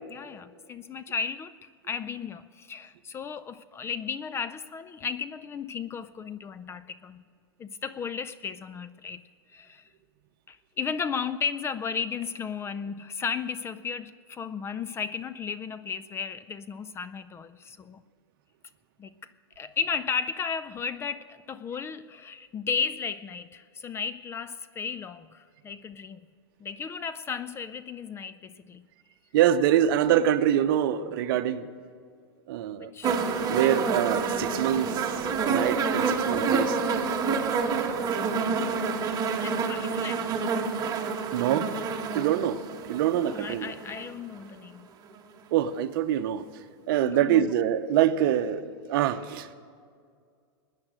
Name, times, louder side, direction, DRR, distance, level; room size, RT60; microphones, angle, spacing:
voice 1, 0.1-7.2 7.6-9.2 9.5-9.9 10.5-18.0 19.0-19.1 19.6-26.3 26.6-28.8 30.1-30.2 32.8-33.1 33.5-33.9 39.3-40.4 43.1-44.9 47.0-47.5, left 6 dB, 20° left, 0.4 m, -34 dB
voice 2, 29.3-31.7 32.5-32.9 33.5-35.0 35.5-36.8 41.3-41.7 42.1-42.6 42.9-43.7 45.5-46.4 46.9-48.6 48.9-49.5, right 11 dB, 60° right, 0.8 m, -24 dB
sound 1, 33.0-44.1 45.1-45.2, right 5 dB, 30° right, 1.4 m, -28 dB
17.5 x 9.8 x 6.4 m
hypercardioid pair, 115°, 13 cm